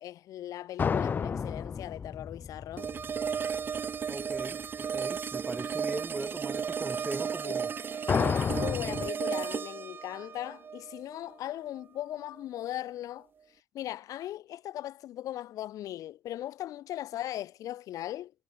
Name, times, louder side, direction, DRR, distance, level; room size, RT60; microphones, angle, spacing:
voice 1, 0.0-2.9 7.4-7.5 8.0-13.3 13.7-18.3, left 13 dB, 75° left, 3.5 m, -39 dB
sound 1, 0.8-3.8 8.1-9.1, left 6 dB, 30° left, 0.9 m, -31 dB
sound 2, 2.8-11.8, right 7 dB, 35° right, 1.8 m, -34 dB
voice 2, 4.1-7.7, right 2 dB, 10° right, 0.7 m, -39 dB
cardioid pair, 155°, 6 cm